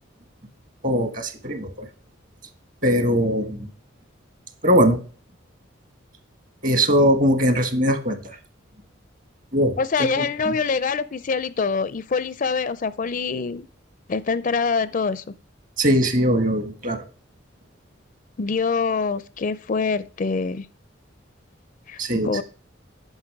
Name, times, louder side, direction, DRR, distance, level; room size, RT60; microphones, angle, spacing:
voice 1, 0.8-1.9 2.8-3.7 4.6-5.0 6.6-8.4 9.5-10.6 15.8-17.0 22.0-22.4, equal, 45° right, 1.4 m, -21 dB
voice 2, 9.8-13.7 14.1-15.2 18.4-20.7 21.9-22.0 22.2-22.4, left 4 dB, 40° left, 0.4 m, -24 dB
9.7 x 5.6 x 4.7 m
head